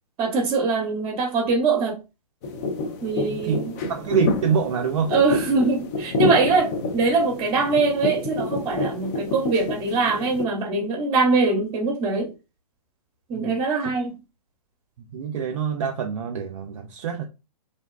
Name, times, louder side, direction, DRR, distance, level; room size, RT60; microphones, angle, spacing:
voice 1, 0.2-2.0 3.0-3.7 5.1-12.3 13.3-14.1, right 4 dB, 25° right, 0.8 m, -23 dB
sound 1, 2.4-10.4, left 2 dB, 25° left, 0.3 m, -28 dB
voice 2, 3.2-3.6 3.9-5.1 13.3-13.5 15.1-17.2, right 6 dB, 50° right, 0.4 m, -25 dB
2.6 x 2.2 x 2.2 m
hypercardioid pair, 130°, 20 cm